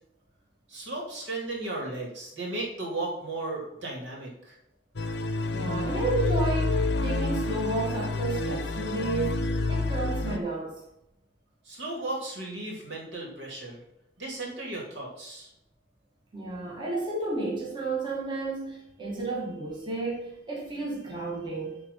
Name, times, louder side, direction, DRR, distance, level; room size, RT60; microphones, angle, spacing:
voice 1, 0.7-4.5 11.6-13.8 14.2-15.5, right 2 dB, 70° right, -2 dB, 2.8 m, -35 dB
sound 1, 5.0-10.4, left 3 dB, 60° left, 0.7 m, -28 dB
voice 2, 5.5-10.8 16.3-21.8, right 2 dB, 25° right, -3 dB, 1.4 m, -32 dB
10.5 x 3.6 x 5.5 m, 0.81 s
head